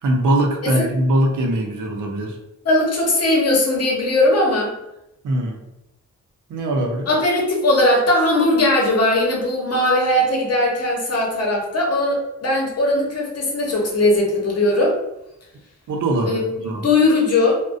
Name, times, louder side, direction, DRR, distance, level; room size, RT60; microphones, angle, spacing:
voice 1, 0.0-2.4 5.2-5.6 6.5-7.1 15.9-16.8, right 1 dB, 80° right, 1 dB, 0.6 m, -21 dB
voice 2, 2.6-4.7 7.1-15.0 16.2-17.6, left 1 dB, 55° left, -1 dB, 0.8 m, -19 dB
2.3 x 2.1 x 2.4 m, 0.87 s
wide cardioid pair, 100°, 30 cm